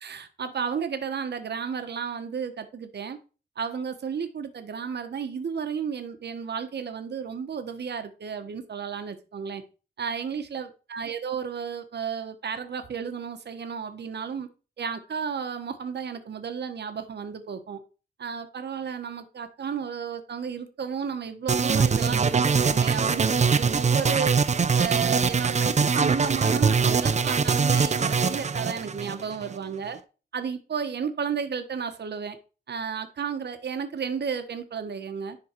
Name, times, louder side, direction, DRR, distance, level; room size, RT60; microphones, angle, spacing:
voice 1, 0.0-3.2 3.6-9.6 10.0-14.5 14.8-17.8 18.2-24.4 24.7-30.0 30.3-32.4 32.7-35.4, right 6 dB, 70° right, 1.0 m, -33 dB
sound 1, 21.5-29.6, right 5 dB, 40° right, 0.5 m, -23 dB
10.5 x 3.7 x 4.4 m
wide cardioid pair, 90°, 18 cm